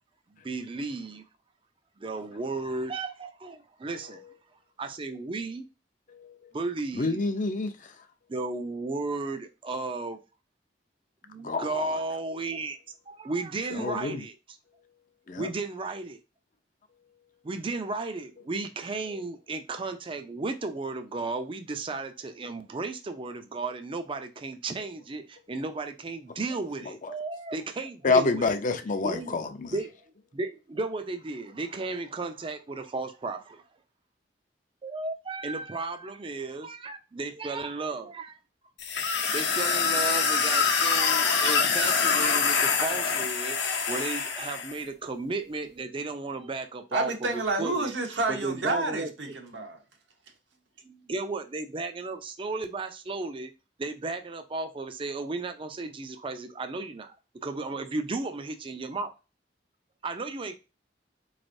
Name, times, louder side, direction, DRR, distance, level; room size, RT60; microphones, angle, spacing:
voice 1, 0.4-1.2 2.0-4.2 4.8-5.6 6.5-7.2 8.3-10.2 11.3-12.8 13.1-14.6 15.4-16.2 17.4-28.6 29.0-29.4 29.7-30.0 30.3-33.6 34.8-38.4 39.3-47.9 48.3-49.1 50.8-53.5 53.8-57.2 57.4-59.1 60.0-60.6, right 3 dB, 30° right, 0.4 m, -34 dB
voice 2, 6.9-7.7 11.4-11.9 13.8-14.2 15.3-15.5 28.0-29.7, left 3 dB, 45° left, 0.5 m, -27 dB
sound 1, 38.8-44.8, left 5 dB, 70° left, 0.8 m, -25 dB
voice 3, 46.9-49.8, right 2 dB, 80° right, 1.0 m, -29 dB
4.3 x 3.2 x 2.6 m
head